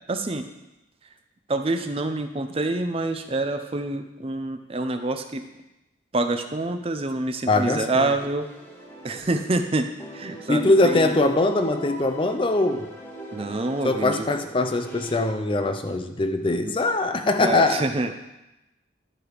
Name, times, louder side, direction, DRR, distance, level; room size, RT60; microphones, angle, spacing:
voice 1, 0.1-0.5 1.5-5.4 6.1-8.5 9.0-9.9 10.1-11.1 13.3-14.3 16.6-16.7 17.4-18.3, right 2 dB, 30° right, 7 dB, 0.5 m, -27 dB
voice 2, 7.5-8.0 10.5-12.9 13.8-17.8, left 2 dB, 25° left, 7 dB, 0.5 m, -22 dB
sound 1, 8.4-9.7 10.0-15.1, right 1 dB, 10° left, 1.0 m, -42 dB
11.5 x 4.8 x 5.0 m, 0.95 s
head